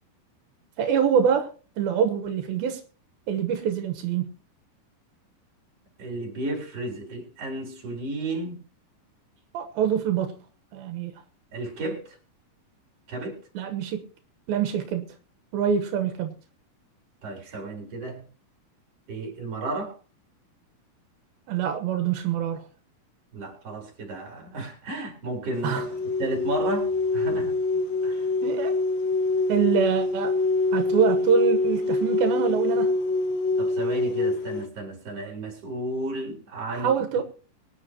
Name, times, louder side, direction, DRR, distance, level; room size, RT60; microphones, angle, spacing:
voice 1, 0.8-1.5 1.8-2.8 3.3-4.2 9.5-10.3 10.7-11.1 13.5-14.1 14.5-15.1 15.5-16.3 21.5-22.6 25.6-25.8 28.4-28.7 29.5-30.3 30.7-32.9 36.7-37.2, right 8 dB, 85° right, 3.0 m, -25 dB
voice 2, 6.0-8.6 11.5-12.2 13.1-13.4 17.2-18.2 19.1-20.0 23.3-27.6 28.0-28.3 33.6-37.0, right 2 dB, 40° right, 4.6 m, -33 dB
sound 1, 25.5-34.6, left 3 dB, 75° left, 3.0 m, -25 dB
24.0 x 9.6 x 2.9 m
omnidirectional pair, 4.2 m